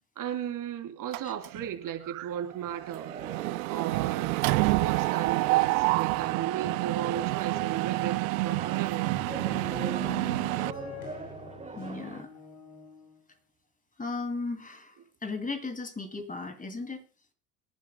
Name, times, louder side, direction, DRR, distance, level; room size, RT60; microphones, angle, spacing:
voice 1, 0.2-3.1 3.7-9.1, right 9 dB, 45° right, 3.2 m, -35 dB
Mechanisms, 1.1-1.7 2.1-2.3 2.5-10.7, right 23 dB, 70° right, 0.5 m, -28 dB
sound 1, 2.9-12.2, right 4 dB, 15° right, 1.1 m, -45 dB
sound 2, 9.0-13.2, left 3 dB, 85° left, 4.6 m, -43 dB
voice 2, 10.0-10.6 11.7-12.3 14.0-17.0, left 3 dB, 20° left, 2.7 m, -36 dB
27.0 x 10.5 x 2.2 m
hypercardioid pair, 75°, 45 cm